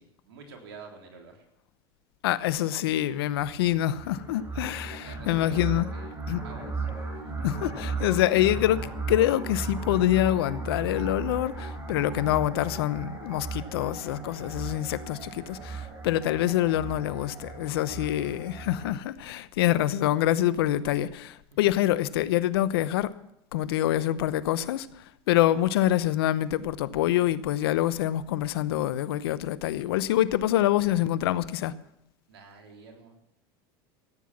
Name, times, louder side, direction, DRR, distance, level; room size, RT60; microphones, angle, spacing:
voice 1, 0.0-1.4 4.8-7.4 8.5-8.7 21.5-21.6 32.3-33.2, right 4 dB, 90° right, 3.5 m, -49 dB
voice 2, 2.2-5.9 6.3-6.4 7.4-23.1 23.5-31.7, left 13 dB, 80° left, 0.8 m, -26 dB
sound 1, 3.4-18.9, right 4 dB, 20° right, 5.1 m, -36 dB
14.5 x 9.6 x 7.3 m
hypercardioid pair, 100°, 13 cm